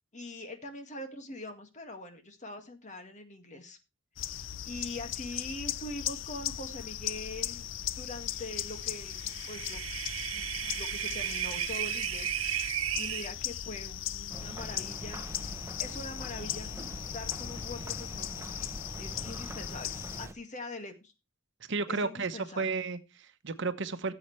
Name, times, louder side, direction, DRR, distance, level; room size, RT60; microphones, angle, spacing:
voice 1, 0.1-3.8 4.3-7.7 8.0-9.8 10.3-12.3 13.0-15.2 15.8-16.7 17.1-18.7 19.0-21.1 21.9-22.7, left 2 dB, 40° left, 1.9 m, -43 dB
sound 1, 4.2-20.3, left 11 dB, 70° left, 0.5 m, -38 dB
sound 2, 9.0-13.3, right 13 dB, 85° right, 0.5 m, -34 dB
sound 3, 14.3-20.3, right 1 dB, 15° right, 0.8 m, -43 dB
voice 2, 21.7-24.1, right 4 dB, 65° right, 1.0 m, -33 dB
15.5 x 8.0 x 3.2 m
head